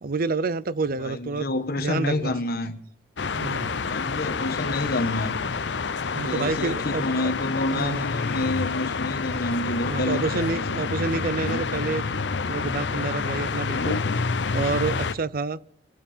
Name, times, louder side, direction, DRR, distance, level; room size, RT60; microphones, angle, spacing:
voice 1, 0.0-1.5 1.8-2.3 3.4-3.8 6.1-7.3 7.7-8.1 9.9-12.0 12.5-14.0 14.5-15.6, right 4 dB, 55° right, 0.6 m, -28 dB
voice 2, 1.0-2.8 3.9-5.4 6.1-10.8, left 2 dB, 55° left, 1.4 m, -28 dB
sound 1, 3.2-15.1, left 4 dB, 70° left, 0.7 m, -28 dB
26.0 x 12.0 x 4.4 m
head